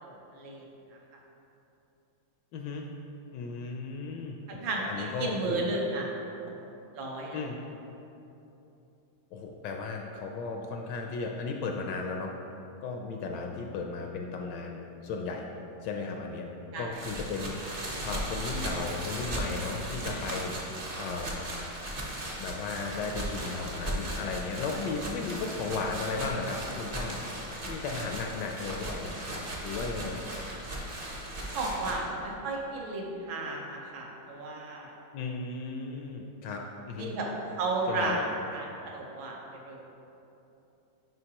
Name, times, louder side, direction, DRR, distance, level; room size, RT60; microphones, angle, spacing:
voice 1, 0.0-0.6 4.5-6.1 7.0-7.4 16.7-17.0 31.5-34.9 37.0-37.3 37.6-38.2 38.5-39.4 39.6-39.8, right 2 dB, 80° right, -1 dB, 1.7 m, -33 dB
voice 2, 2.5-2.9 3.3-5.7 7.3-7.6 9.3-12.3 12.8-15.5 15.8-16.5 16.8-20.6 21.0-21.4 22.4-27.2 27.6-29.1 29.6-30.2 35.1-37.1 37.9-38.2, left 4 dB, 75° left, 2 dB, 1.1 m, -35 dB
sound 1, 16.9-31.9, right 1 dB, 40° right, 0.8 m, -37 dB
9.7 x 4.7 x 2.9 m, 2.9 s
omnidirectional pair, 2.2 m